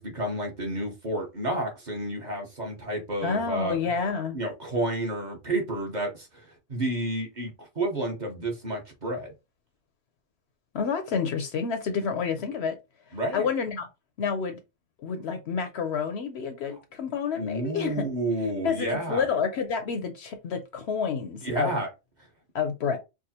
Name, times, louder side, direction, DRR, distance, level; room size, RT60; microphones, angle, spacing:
voice 1, 0.0-3.8 4.3-9.3 13.1-13.5 17.3-19.2 21.4-21.9, right 1 dB, 40° right, 1.0 m, -30 dB
voice 2, 3.2-4.4 10.7-12.8 13.3-13.9 14.2-14.6 15.0-18.1 18.6-21.8 22.5-23.0, left 6 dB, 65° left, 0.8 m, -29 dB
4.7 x 2.1 x 2.8 m
omnidirectional pair, 1.3 m